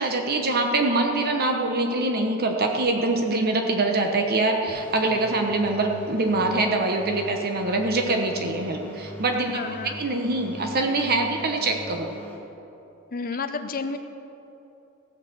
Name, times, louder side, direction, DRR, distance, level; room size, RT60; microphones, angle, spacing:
voice 1, 0.0-9.6 10.0-12.1, right 2 dB, 45° right, 3 dB, 1.0 m, -24 dB
sound 1, 4.7-12.4, equal, 5° left, 1.5 m, -42 dB
voice 2, 9.5-10.0 13.1-14.0, left 4 dB, 40° left, 7 dB, 0.8 m, -31 dB
15.5 x 6.5 x 7.9 m, 2.9 s
head